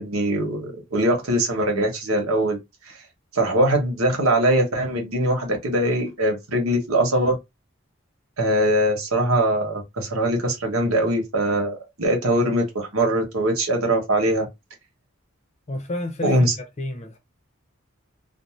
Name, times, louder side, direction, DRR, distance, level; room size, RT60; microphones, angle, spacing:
voice 1, 0.0-2.6 2.9-3.0 3.3-7.4 8.4-14.5 16.2-16.5, right 1 dB, 85° right, 1.1 m, -22 dB
voice 2, 15.7-17.2, left 2 dB, 30° left, 0.5 m, -31 dB
2.6 x 2.0 x 3.1 m
head